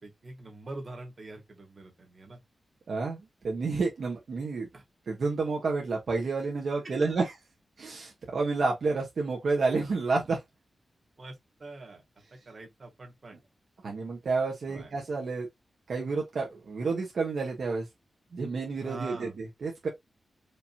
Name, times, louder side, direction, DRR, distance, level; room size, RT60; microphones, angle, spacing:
voice 1, 0.0-2.4 4.7-4.8 6.8-7.1 11.2-12.0 12.3-13.4 14.7-14.9 18.8-19.4, right 2 dB, 35° right, 1.8 m, -44 dB
voice 2, 2.9-4.7 5.1-7.3 7.8-10.4 13.8-15.5 15.9-17.9 18.3-19.9, right 4 dB, 60° right, 1.1 m, -30 dB
5.1 x 2.8 x 2.7 m
wide cardioid pair, 160°, 0 cm